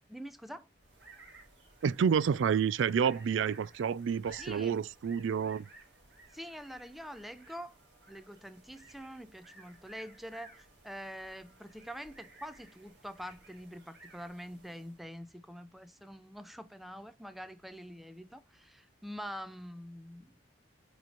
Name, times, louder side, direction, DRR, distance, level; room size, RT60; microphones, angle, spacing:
voice 1, 0.1-0.7 4.4-4.8 6.3-7.7 8.1-20.3, equal, ahead, 0.4 m, -45 dB
sound 1, 0.8-15.1, right 2 dB, 60° right, 3.5 m, -57 dB
voice 2, 1.8-5.6, right 7 dB, 80° right, 0.3 m, -29 dB
8.5 x 3.1 x 3.9 m
head